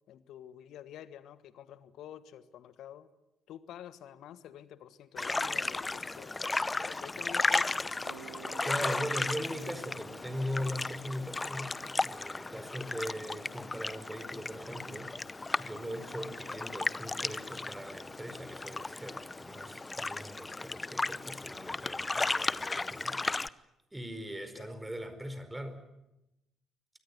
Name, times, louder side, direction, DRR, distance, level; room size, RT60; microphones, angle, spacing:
voice 1, 0.1-3.1 3.5-6.4 6.9-8.2 13.1-13.2 24.5-24.7, left 10 dB, 60° left, 14 dB, 1.4 m, -49 dB
sound 1, 5.2-23.5, left 3 dB, 20° left, 0.8 m, -35 dB
Bass guitar, 8.1-12.0, right 13 dB, 80° right, 0.9 m, -53 dB
voice 2, 8.6-11.8 12.0-15.2 15.6-23.2 23.4-23.5 23.9-25.8, equal, 10° right, 10 dB, 4.7 m, -40 dB
23.5 x 19.5 x 9.5 m, 0.93 s
figure-of-eight pair, 45°, 0 cm